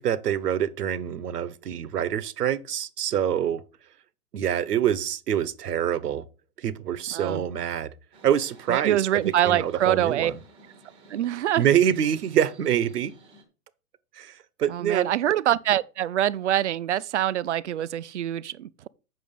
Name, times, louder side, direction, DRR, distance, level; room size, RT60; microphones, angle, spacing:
voice 1, 0.0-3.6 4.3-6.2 6.6-7.9 8.2-10.3 11.6-13.1 14.1-15.1, right 9 dB, 80° right, 1.1 m, -26 dB
voice 2, 7.1-7.4 8.7-10.3 11.1-11.7 14.7-18.9, right 12 dB, 50° right, 0.5 m, -25 dB
sound 1, 8.1-13.4, right 2 dB, 10° right, 1.0 m, -52 dB
7.8 x 6.1 x 5.4 m
hypercardioid pair, 165°, 46 cm